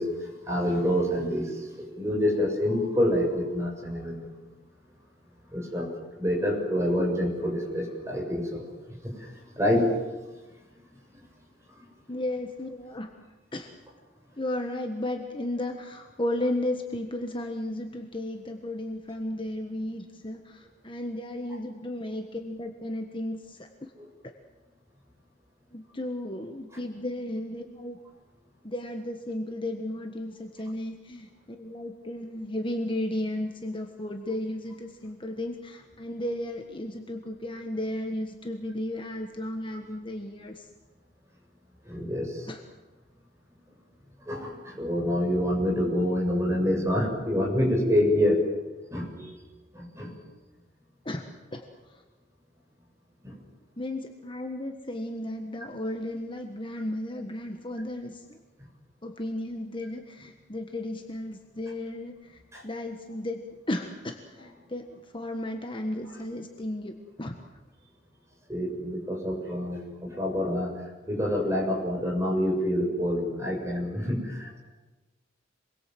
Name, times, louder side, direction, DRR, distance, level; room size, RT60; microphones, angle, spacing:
voice 1, 0.0-4.3 5.5-5.9 6.2-8.6 9.0-9.1 9.6-9.9 41.9-42.5 44.3-48.4 48.9-49.3 49.7-50.1 53.2-53.3 62.5-62.6 68.5-70.7 71.1-74.6, left 1 dB, 15° right, -1 dB, 7.0 m, -27 dB
voice 2, 12.1-13.1 13.5-13.7 14.4-23.9 25.7-28.0 28.6-40.7 42.5-42.6 51.0-52.0 53.8-58.4 59.0-67.4, left 1 dB, 25° left, 4 dB, 1.5 m, -34 dB
27.0 x 22.0 x 7.8 m, 1.2 s
head